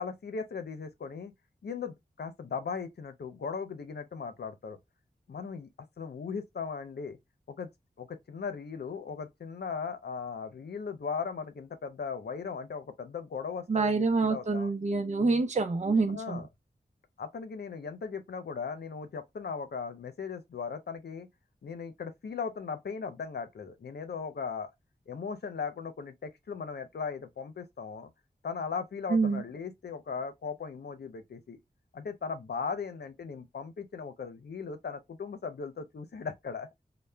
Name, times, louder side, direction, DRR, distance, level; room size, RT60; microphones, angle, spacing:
voice 1, 0.0-1.3 1.6-4.8 5.3-7.2 7.5-7.7 8.0-14.7 16.1-16.5 17.2-21.3 21.6-24.7 25.1-28.1 28.4-31.6 31.9-36.7, left 5 dB, 85° left, 0.6 m, -38 dB
voice 2, 13.7-16.4 29.1-29.4, right 4 dB, 45° right, 0.6 m, -26 dB
4.0 x 2.2 x 3.2 m
cardioid pair, 50°, 16 cm